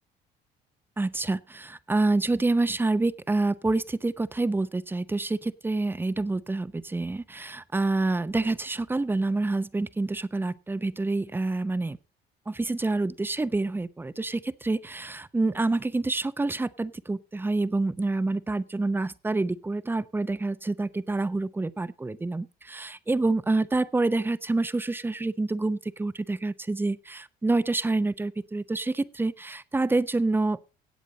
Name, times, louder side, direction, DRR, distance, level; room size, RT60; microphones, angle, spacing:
voice 1, 1.0-12.0 12.5-30.6, right 2 dB, 10° right, 15 dB, 0.8 m, -27 dB
17.5 x 8.0 x 4.0 m, 0.30 s
cardioid pair, 110°, 17 cm